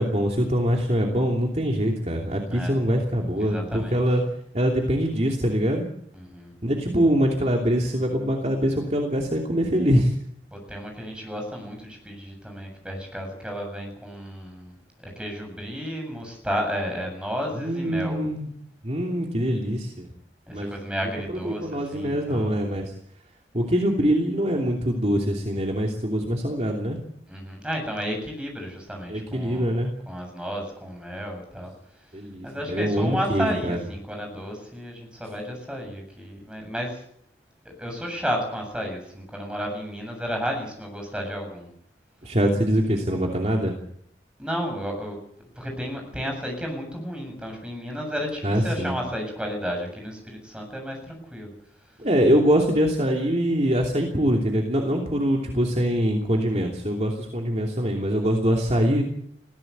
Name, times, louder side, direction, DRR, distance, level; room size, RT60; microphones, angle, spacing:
voice 1, 0.0-4.2 4.5-5.8 6.6-10.1 17.6-18.5 18.8-20.1 20.5-20.8 21.4-22.9 23.5-27.0 29.1-29.9 32.1-33.8 42.2-43.7 48.4-48.9 52.0-59.0, equal, 35° right, 1 dB, 2.9 m, -23 dB
voice 2, 2.5-2.8 3.4-4.0 6.1-6.5 10.5-18.2 20.5-22.5 27.3-31.7 32.4-37.0 37.8-41.7 44.4-45.2 45.5-51.5, equal, 5° right, 2 dB, 7.7 m, -32 dB
21.5 x 16.5 x 8.1 m, 0.67 s
head